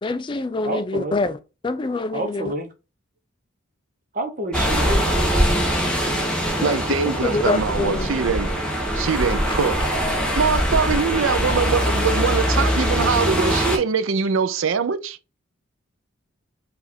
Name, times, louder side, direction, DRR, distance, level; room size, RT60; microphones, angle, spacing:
voice 1, 0.0-2.5 6.6-6.8 7.2-8.1, left 3 dB, 25° left, 0.3 m, -25 dB
voice 2, 0.6-1.2 2.1-2.7 4.1-5.3, right 1 dB, 40° right, 0.9 m, -28 dB
sound 1, 4.5-13.8, equal, 5° left, 0.9 m, -22 dB
voice 3, 6.6-8.5 8.9-9.8 10.4-15.2, right 5 dB, 70° right, 0.5 m, -23 dB
4.9 x 2.5 x 4.1 m
head